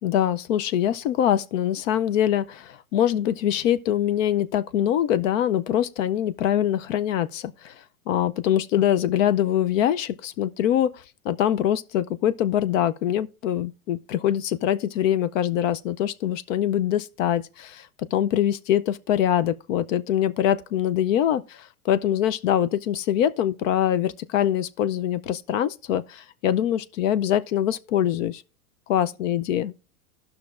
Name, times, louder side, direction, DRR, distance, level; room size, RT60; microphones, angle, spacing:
voice 1, 0.0-7.7 8.1-10.9 11.2-28.4 28.9-29.7, left 10 dB, 65° left, 0.7 m, -24 dB
16.0 x 5.9 x 2.5 m
supercardioid pair, 145°, 42 cm